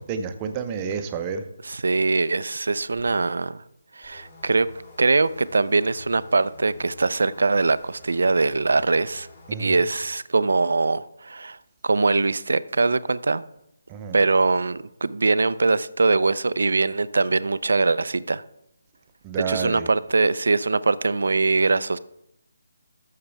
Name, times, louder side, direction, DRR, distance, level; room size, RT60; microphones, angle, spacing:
voice 1, 0.0-1.4 9.5-9.8 13.9-14.2 19.2-19.9, right 6 dB, 20° right, 0.8 m, -30 dB
voice 2, 1.6-3.6 4.0-4.7 5.0-9.3 9.6-11.6 11.8-13.4 14.1-18.4 19.5-22.0, right 3 dB, 75° right, 0.5 m, -22 dB
sound 1, 4.0-9.6, left 2 dB, 30° left, 3.8 m, -48 dB
13.0 x 6.7 x 3.4 m
figure-of-eight pair, 160°, 0 cm